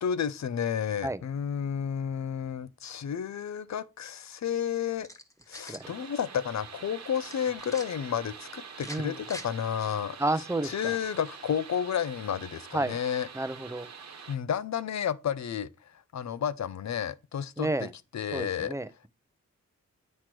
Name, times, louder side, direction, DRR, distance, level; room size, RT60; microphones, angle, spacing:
voice 1, 0.0-5.1 5.5-10.2 10.6-13.3 14.3-17.9 18.1-18.7, left 8 dB, 65° left, 0.6 m, -31 dB
sound 1, 5.0-5.9 7.2-7.9 8.7-9.5, equal, 10° left, 1.3 m, -44 dB
sound 2, 5.8-14.4, right 6 dB, 60° right, 1.2 m, -46 dB
voice 2, 8.9-9.2 10.2-11.0 12.7-13.0 13.3-13.9 17.6-17.9 18.3-19.1, right 2 dB, 10° right, 0.6 m, -31 dB
8.6 x 3.1 x 6.0 m
cardioid pair, 70°, 30 cm